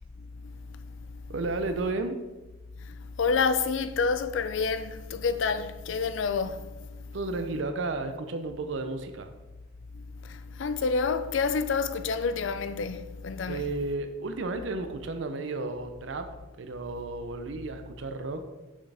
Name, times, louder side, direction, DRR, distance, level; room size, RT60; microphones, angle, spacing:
voice 1, 1.3-2.2 7.1-9.3 13.5-16.3 16.6-18.4, right 3 dB, 70° right, 0.5 m, -33 dB
voice 2, 3.2-6.7 10.3-13.6, left 5 dB, 75° left, 0.4 m, -28 dB
6.4 x 5.9 x 3.4 m
head